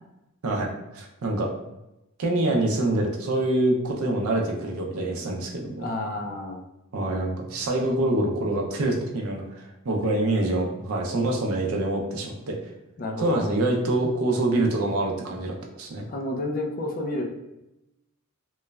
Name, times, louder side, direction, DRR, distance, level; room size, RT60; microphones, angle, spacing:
voice 1, 0.4-1.5 2.2-5.9 6.9-12.6 13.2-16.0, right 2 dB, 75° right, 0 dB, 0.5 m, -25 dB
voice 2, 5.8-6.6 10.0-10.1 13.0-13.5 16.1-17.2, left 1 dB, 40° left, 2 dB, 0.4 m, -30 dB
3.0 x 2.0 x 2.3 m, 0.92 s
head